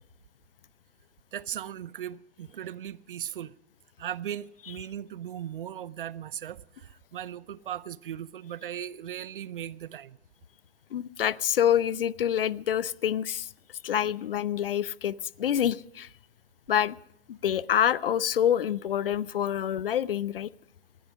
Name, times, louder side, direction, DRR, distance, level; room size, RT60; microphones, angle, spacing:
voice 1, 1.3-3.5 4.0-10.2, right 10 dB, 55° right, 0.6 m, -38 dB
voice 2, 10.9-13.5 13.8-16.1 16.7-17.0 17.3-20.5, left 10 dB, 60° left, 0.6 m, -26 dB
19.0 x 14.0 x 5.0 m
figure-of-eight pair, 110°, 32 cm